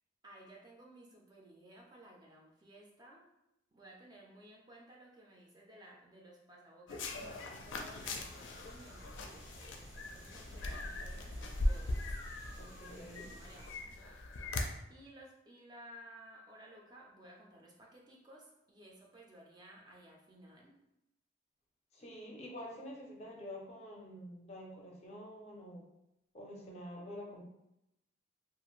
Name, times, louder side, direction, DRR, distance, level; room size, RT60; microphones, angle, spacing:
voice 1, 0.2-3.3 3.7-12.1 12.7-14.2 14.9-20.8, right 1 dB, 20° right, -2 dB, 0.4 m, -57 dB
sound 1, 6.9-14.6, left 2 dB, 85° left, 0.4 m, -40 dB
sound 2, 7.7-13.7, equal, 85° right, 1.2 m, -54 dB
voice 2, 12.6-13.3 21.9-25.9 26.3-27.4, equal, 35° left, -1 dB, 0.5 m, -48 dB
2.5 x 2.4 x 3.0 m, 0.86 s
head